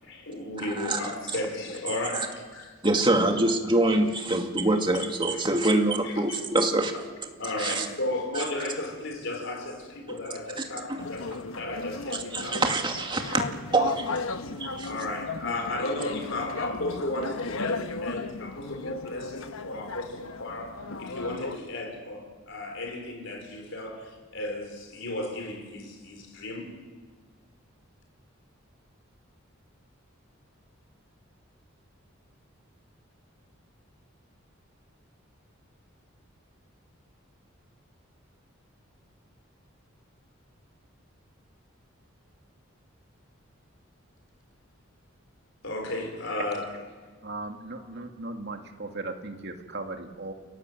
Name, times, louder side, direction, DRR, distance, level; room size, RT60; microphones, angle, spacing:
voice 1, 0.0-2.8 4.7-5.4 6.0-6.4 7.4-12.6 14.8-26.7 45.6-46.7 47.8-47.9, left 2 dB, 65° left, 5.3 m, -34 dB
voice 2, 2.8-6.9 7.6-7.9 10.9-11.0 12.3-13.4 13.7-14.1 14.6-14.9, right 2 dB, 25° right, 2.4 m, -24 dB
sound 1, 11.0-21.6, left 3 dB, 85° left, 1.2 m, -35 dB
voice 3, 47.2-50.3, right 2 dB, 55° right, 2.5 m, -37 dB
29.0 x 19.0 x 8.0 m
head